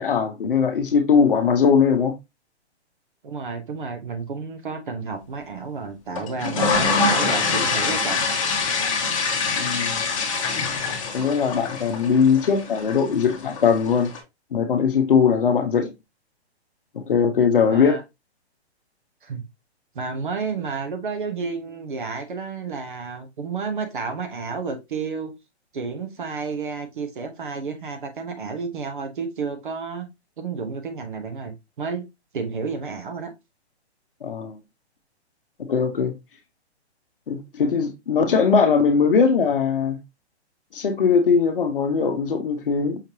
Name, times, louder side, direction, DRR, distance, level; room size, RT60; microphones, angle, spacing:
voice 1, 0.0-2.1 9.5-10.0 11.1-14.1 14.5-15.9 16.9-18.0 34.2-34.6 35.6-36.1 37.3-40.0 40.7-43.0, left 6 dB, 50° left, 0.9 m, -20 dB
voice 2, 3.2-8.3 17.7-18.0 19.2-19.5 19.9-25.3 25.7-30.1 30.4-32.1 32.3-33.3, right 4 dB, 50° right, 1.0 m, -31 dB
sound 1, 6.2-14.2, left 4 dB, 30° left, 1.1 m, -25 dB
5.7 x 3.2 x 2.8 m
hypercardioid pair, 175°, 34 cm